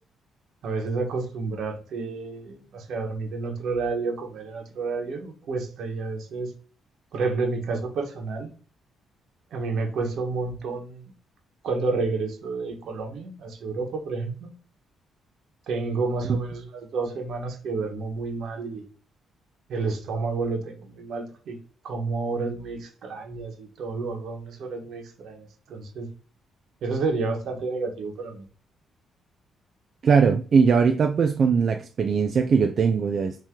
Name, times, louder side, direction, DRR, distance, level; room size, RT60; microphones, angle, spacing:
voice 1, 0.6-6.5 7.1-8.5 9.5-11.1 11.6-14.5 15.7-18.8 19.7-21.6 21.8-26.1 26.8-28.4, right 3 dB, 70° right, 1.2 m, -30 dB
voice 2, 30.0-33.4, right 5 dB, 50° right, 0.3 m, -20 dB
4.4 x 2.9 x 3.7 m
cardioid pair, 90°, 0 cm